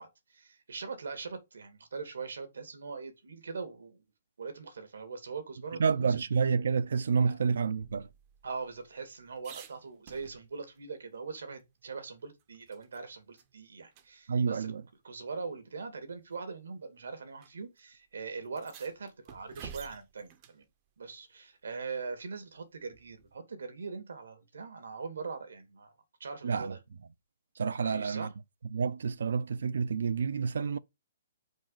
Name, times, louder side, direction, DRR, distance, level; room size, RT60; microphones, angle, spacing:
voice 1, 0.0-4.0 4.4-6.1 7.2-7.4 8.4-14.7 15.0-20.6 21.0-25.9 26.2-26.8 27.8-28.3, right 4 dB, 85° right, 2.4 m, -41 dB
voice 2, 5.8-8.1 14.3-14.8 26.4-26.7 27.6-28.3 28.7-30.8, right 5 dB, 65° right, 0.5 m, -29 dB
sound 1, 7.8-10.8 11.1-11.2 11.6-13.0 13.4-13.5 13.9-14.1 15.1-15.2 16.1-16.4 17.4-17.5 17.8-17.9 18.4-20.6 22.9-23.4, right 9 dB, 20° right, 0.6 m, -52 dB
5.3 x 5.1 x 5.6 m
hypercardioid pair, 180°, 0 cm